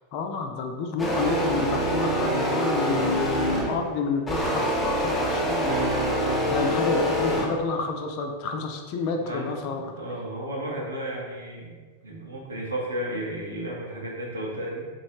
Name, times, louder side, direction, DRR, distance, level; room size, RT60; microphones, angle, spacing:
voice 1, 0.1-9.9, left 4 dB, 45° left, 4 dB, 0.5 m, -30 dB
sound 1, 1.0-3.8 4.3-7.5, equal, 10° left, 0.9 m, -25 dB
sound 2, 1.6-4.8 5.7-7.1, right 2 dB, 55° right, 0.4 m, -34 dB
voice 2, 9.2-11.8 12.0-14.9, right 1 dB, 75° right, -3 dB, 1.1 m, -33 dB
4.2 x 3.1 x 2.9 m, 1.5 s
figure-of-eight pair, 90°, 0 cm